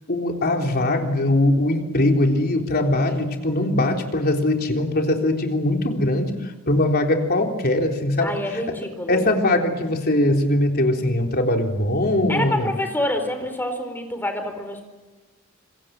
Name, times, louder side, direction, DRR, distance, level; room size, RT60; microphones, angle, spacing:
voice 1, 0.1-8.3 9.1-12.8, left 1 dB, 50° left, 3 dB, 3.7 m, -21 dB
voice 2, 8.2-9.3 12.3-14.8, left 1 dB, 10° left, 6 dB, 4.4 m, -27 dB
27.0 x 24.0 x 7.7 m, 1.2 s
head